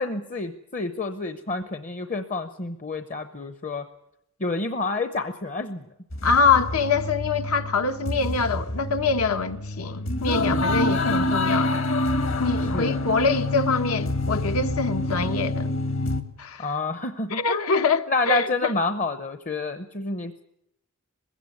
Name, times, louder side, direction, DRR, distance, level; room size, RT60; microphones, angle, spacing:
voice 1, 0.0-3.9 4.4-5.8 10.4-10.7 12.7-13.1 16.6-20.4, left 3 dB, 35° left, 0.7 m, -29 dB
sound 1, 6.1-16.2, left 1 dB, 65° left, 1.8 m, -27 dB
voice 2, 6.2-11.8 12.4-15.7 16.4-16.7 17.3-18.7, left 4 dB, 80° left, 1.3 m, -24 dB
21.0 x 16.5 x 9.4 m
head